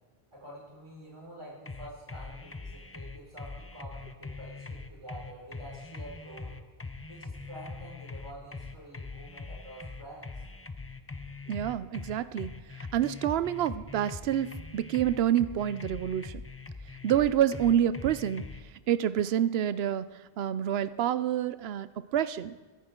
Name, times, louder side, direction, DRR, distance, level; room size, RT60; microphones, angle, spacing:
voice 1, 0.3-6.6 7.1-10.3, right 1 dB, 30° right, -6 dB, 5.0 m, -47 dB
sound 1, 1.7-18.6, left 3 dB, 20° left, 0.4 m, -42 dB
voice 2, 11.5-12.6 12.9-16.4 17.0-18.5 18.9-22.5, right 10 dB, 80° right, 15 dB, 0.8 m, -28 dB
22.0 x 10.5 x 3.7 m, 1.3 s
omnidirectional pair, 1.0 m